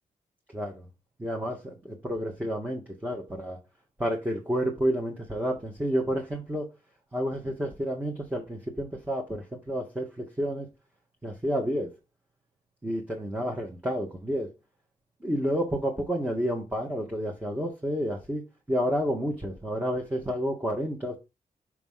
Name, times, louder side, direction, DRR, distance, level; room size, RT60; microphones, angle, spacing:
voice 1, 0.5-0.9 1.2-3.6 4.0-6.7 7.1-10.7 11.2-11.9 12.8-14.5 15.2-21.2, equal, 10° right, 1.2 m, -30 dB
6.0 x 3.0 x 5.5 m
cardioid pair, 95°, 14 cm